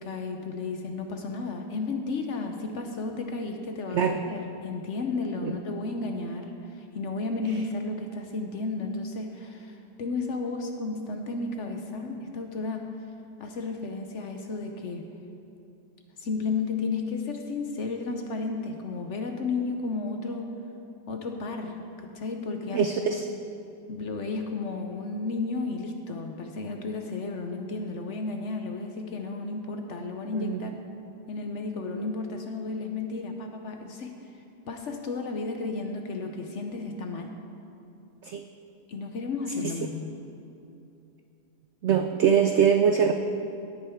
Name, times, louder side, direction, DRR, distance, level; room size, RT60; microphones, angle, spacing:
voice 1, 0.0-13.0 13.4-15.1 16.2-20.6 21.1-22.9 23.9-30.8 31.3-34.3 34.7-37.4 38.9-40.1, left 3 dB, 60° left, 4 dB, 0.9 m, -33 dB
voice 2, 22.7-23.2 30.3-30.6 38.2-38.5 39.6-39.7 41.8-43.1, right 7 dB, 80° right, 6 dB, 0.6 m, -23 dB
17.5 x 8.7 x 3.6 m, 2.7 s
omnidirectional pair, 1.7 m